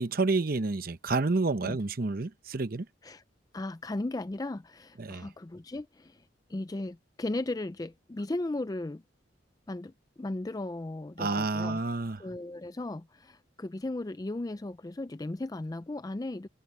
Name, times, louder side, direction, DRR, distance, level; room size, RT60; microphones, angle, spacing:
voice 1, 0.0-2.9 5.0-5.3 11.2-12.2, right 3 dB, 50° right, 0.8 m, -29 dB
voice 2, 3.5-6.2 6.5-9.0 9.7-11.8 12.2-16.5, left 2 dB, 20° left, 0.4 m, -36 dB
head